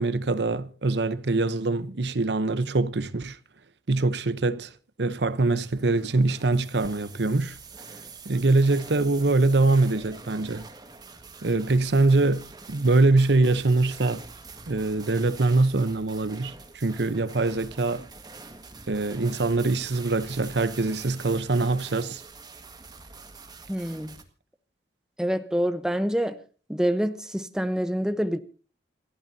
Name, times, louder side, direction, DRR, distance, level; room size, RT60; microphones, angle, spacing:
voice 1, 0.0-3.4 3.9-4.7 5.0-7.6 8.2-10.7 11.4-14.2 14.7-18.0 18.9-22.2, right 2 dB, 75° right, 0.9 m, -23 dB
sound 1, 5.5-24.2, right 4 dB, 25° right, 1.7 m, -45 dB
voice 2, 23.7-24.2 25.2-26.4 26.7-28.4, equal, 5° right, 0.9 m, -26 dB
28.5 x 12.0 x 2.8 m
head